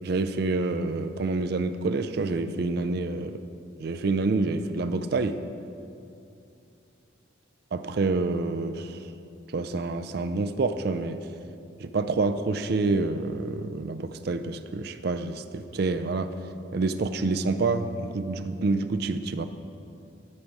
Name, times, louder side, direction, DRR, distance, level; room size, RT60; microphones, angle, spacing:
voice 1, 0.0-3.3 3.8-5.4 7.7-9.0 9.5-11.2 11.8-16.3 16.7-19.5, right 3 dB, 50° right, 10 dB, 0.4 m, -27 dB
13.0 x 4.6 x 5.4 m, 2.6 s
head